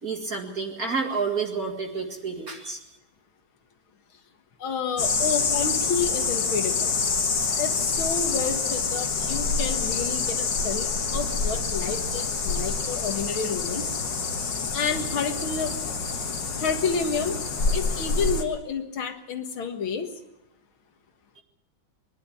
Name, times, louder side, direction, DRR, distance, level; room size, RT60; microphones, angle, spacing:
voice 1, 0.0-2.8 21.4-21.5, right 5 dB, 45° right, 1 dB, 2.5 m, -29 dB
voice 2, 4.6-7.0 7.6-13.9 14.7-15.8 16.6-17.4 17.7-20.1, left 6 dB, 85° left, 6 dB, 2.5 m, -30 dB
sound 1, 5.0-18.4, left 4 dB, 65° left, 2.3 m, -27 dB
23.0 x 11.5 x 10.0 m, 0.95 s
omnidirectional pair, 2.2 m